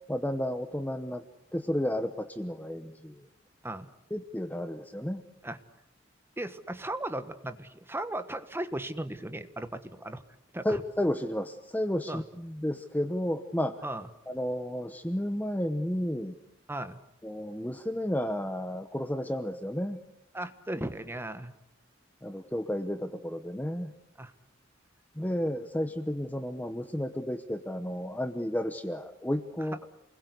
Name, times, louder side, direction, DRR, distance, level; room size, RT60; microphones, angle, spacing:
voice 1, 0.1-1.3 1.5-3.3 4.1-5.2 10.6-13.8 14.3-16.4 17.2-20.0 22.2-23.9 25.1-29.9, equal, 10° left, 9 dB, 0.9 m, -32 dB
voice 2, 6.4-10.2 10.5-10.8 12.1-12.2 13.8-14.1 16.7-17.0 20.3-21.5 24.2-24.3, right 1 dB, 10° right, 10 dB, 1.3 m, -36 dB
28.0 x 21.0 x 8.2 m, 0.85 s
head